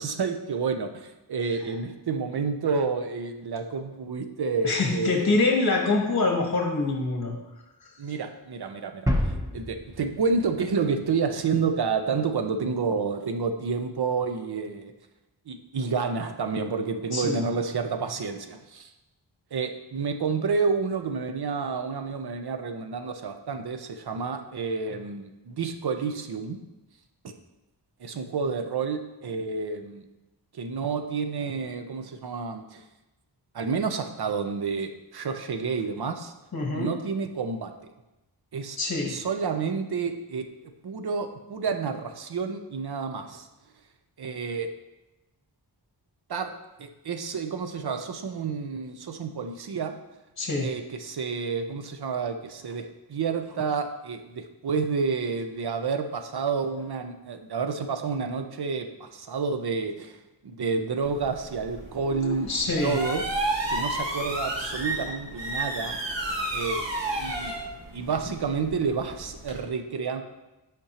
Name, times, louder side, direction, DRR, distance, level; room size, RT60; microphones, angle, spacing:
voice 1, 0.0-5.3 8.0-14.9 15.5-18.9 19.5-26.6 28.0-30.1 30.5-32.8 33.5-36.3 36.7-37.7 38.5-38.8 39.1-40.5 40.8-43.5 44.2-44.7 46.3-46.5 46.8-49.9 50.6-60.2 60.4-62.5 62.8-63.2 63.7-66.0 66.5-66.8 67.2-67.5 67.9-70.2, right 5 dB, 60° right, 7 dB, 0.7 m, -29 dB
voice 2, 4.6-7.4 7.8-7.9 17.1-17.4 36.5-37.0 38.8-39.2 50.4-50.7 62.1-63.0, left 3 dB, 40° left, 1 dB, 1.0 m, -25 dB
sound 1, 9.1-11.7, equal, 10° right, 0.7 m, -30 dB
sound 2, 61.0-69.6, right 1 dB, 85° right, 1.5 m, -32 dB
8.4 x 5.1 x 2.9 m, 1.0 s
wide cardioid pair, 95°, 43 cm